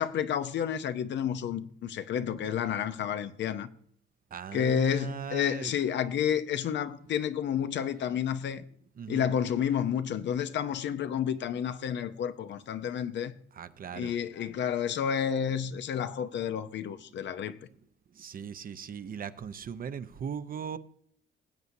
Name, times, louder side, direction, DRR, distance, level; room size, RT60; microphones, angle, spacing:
voice 1, 0.0-3.7 4.5-8.6 9.1-13.3 13.9-17.6, left 8 dB, 65° left, 0.7 m, -30 dB
voice 2, 4.3-5.7 9.0-9.3 13.5-14.1 18.1-20.8, right 7 dB, 45° right, 0.7 m, -39 dB
17.5 x 8.1 x 2.7 m
cardioid pair, 90°, 20 cm